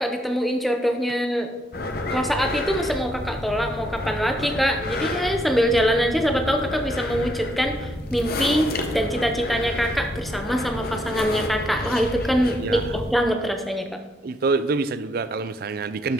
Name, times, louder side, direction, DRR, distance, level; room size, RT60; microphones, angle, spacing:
voice 1, 0.0-1.5 2.1-14.0, equal, ahead, 4 dB, 0.6 m, -24 dB
sound 1, 1.7-13.2, left 2 dB, 50° left, 0.8 m, -31 dB
voice 2, 12.4-13.0 14.2-16.1, right 4 dB, 50° right, 14 dB, 0.4 m, -26 dB
12.5 x 5.7 x 3.6 m, 1.2 s
head